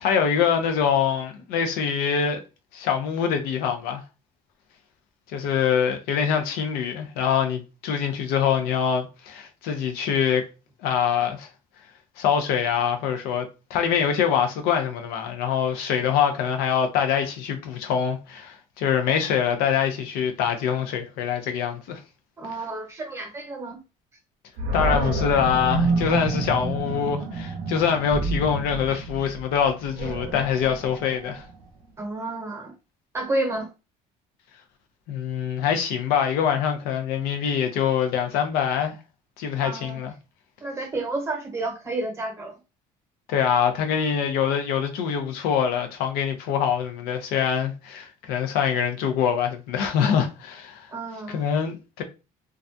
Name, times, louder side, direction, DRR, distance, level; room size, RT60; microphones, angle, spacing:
voice 1, 0.0-2.4 2.7-4.0 5.3-10.4 10.8-11.5 12.2-22.0 24.7-31.4 35.1-39.0 39.4-40.1 43.3-50.9 51.3-52.0, left 8 dB, 80° left, 0.5 m, -24 dB
voice 2, 22.4-23.8 32.0-32.7 33.1-33.7 39.6-40.0 40.6-42.5 50.9-51.4, right 2 dB, 20° right, 1.0 m, -30 dB
Animal, 24.6-31.7, right 3 dB, 65° right, 0.5 m, -29 dB
2.3 x 2.2 x 2.6 m
cardioid pair, 135°, 16 cm